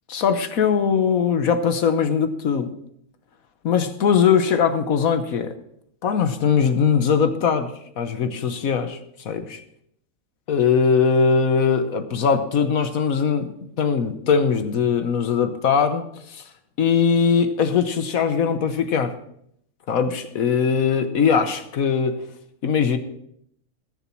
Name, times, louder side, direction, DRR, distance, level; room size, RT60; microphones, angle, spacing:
voice 1, 0.1-2.7 3.6-5.6 6.0-9.0 9.2-9.6 10.5-16.4 16.8-19.1 19.9-22.2 22.6-23.0, left 6 dB, 75° left, 9 dB, 1.4 m, -21 dB
20.5 x 7.1 x 4.5 m, 0.71 s
omnidirectional pair, 1.5 m